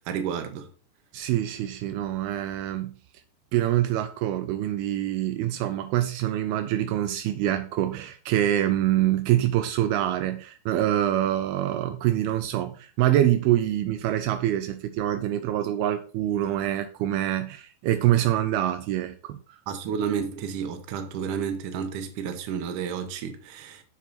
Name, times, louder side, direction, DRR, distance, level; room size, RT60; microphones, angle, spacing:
voice 1, 0.1-0.7 19.7-23.8, right 7 dB, 70° right, 2.0 m, -31 dB
voice 2, 1.1-2.9 3.5-19.6, right 12 dB, 90° right, 2.2 m, -25 dB
7.4 x 7.1 x 4.2 m
omnidirectional pair, 5.1 m